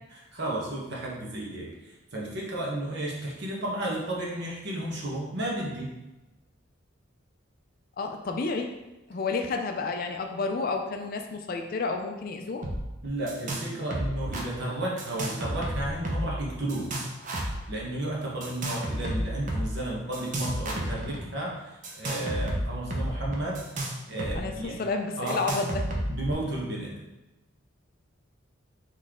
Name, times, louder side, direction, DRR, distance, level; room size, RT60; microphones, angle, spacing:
voice 1, 0.3-5.9 13.0-16.9 17.7-23.6 24.1-24.8 25.2-25.4 26.1-26.9, right 1 dB, 55° right, -3 dB, 1.1 m, -33 dB
voice 2, 8.0-8.7 9.1-12.6 24.3-24.5 24.8-25.9, left 3 dB, 45° left, 4 dB, 0.4 m, -30 dB
sound 1, 12.6-12.8 13.0-13.7 13.9-14.4 15.0-16.4 16.7-17.6 18.4-19.7 20.1-21.2 21.8-24.4 24.6-24.7 25.3-26.3, right 1 dB, 40° right, 0.6 m, -31 dB
4.1 x 3.2 x 3.6 m, 1.0 s
head